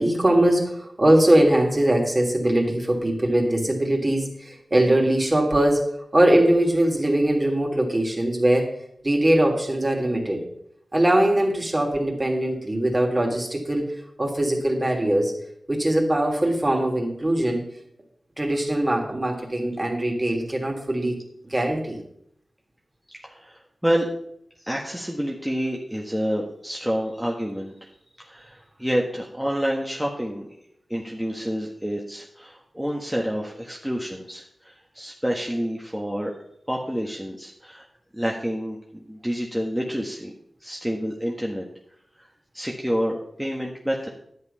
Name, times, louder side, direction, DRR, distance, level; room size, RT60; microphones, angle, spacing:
voice 1, 0.0-5.9 6.1-8.7 9.0-10.4 10.9-13.9 14.2-15.3 15.7-17.6 18.4-21.2 21.4-22.0, right 1 dB, 30° right, 1 dB, 3.1 m, -21 dB
voice 2, 23.2-24.1 24.6-27.7 28.2-30.5 30.9-36.3 36.7-37.8 38.1-40.3 40.6-41.7 42.2-42.3 42.5-44.1, equal, 5° right, -1 dB, 1.6 m, -28 dB
10.5 x 8.1 x 5.6 m, 0.72 s
cardioid pair, 45°, 0 cm